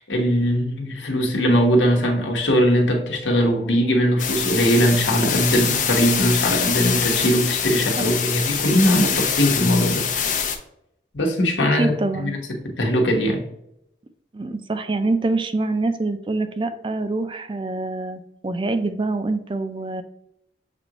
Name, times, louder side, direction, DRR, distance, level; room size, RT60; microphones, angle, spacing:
voice 1, 0.0-10.0 11.1-12.4 12.8-13.4, equal, 90° left, 1 dB, 1.2 m, -20 dB
sound 1, 4.2-10.6, left 7 dB, 45° left, 0.5 m, -24 dB
voice 2, 11.6-12.3 14.3-20.0, right 2 dB, 25° right, 9 dB, 0.3 m, -25 dB
6.8 x 2.5 x 2.9 m, 0.80 s
head